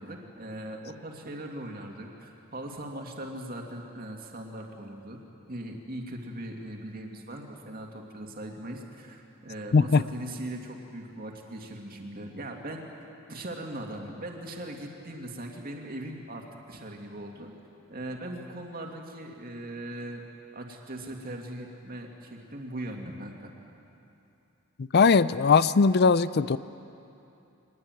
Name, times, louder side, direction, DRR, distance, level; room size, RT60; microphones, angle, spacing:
voice 1, 0.0-5.2 5.5-12.9 13.3-17.5 17.9-20.2 20.5-23.5, right 1 dB, 40° right, 1 dB, 2.4 m, -39 dB
voice 2, 9.7-10.0 24.8-26.6, left 5 dB, 45° left, 16 dB, 0.5 m, -20 dB
23.5 x 20.0 x 9.2 m, 2.8 s
head